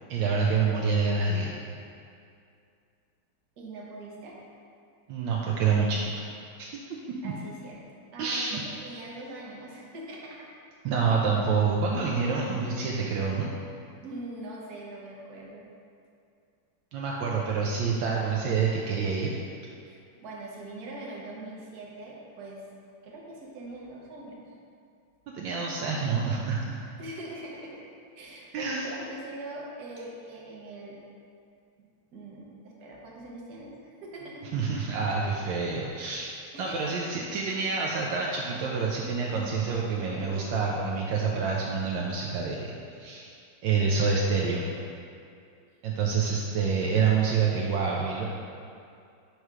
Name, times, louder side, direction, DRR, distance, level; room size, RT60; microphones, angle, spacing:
voice 1, 0.1-1.5 5.1-6.0 6.6-6.7 7.1-7.3 8.2-8.6 10.8-13.5 16.9-19.3 25.3-26.8 28.5-28.9 34.5-36.3 36.6-42.7 43.0-43.3 43.6-44.7 45.8-48.3, right 5 dB, 80° right, -2 dB, 1.3 m, -27 dB
voice 2, 3.6-4.4 7.2-7.8 8.1-10.5 14.0-15.7 19.9-22.7 23.0-24.4 27.0-27.8 28.1-31.0 31.8-34.5 36.2-37.3, right 2 dB, 60° right, -3 dB, 1.3 m, -42 dB
6.5 x 3.1 x 4.7 m, 2.4 s
omnidirectional pair, 2.1 m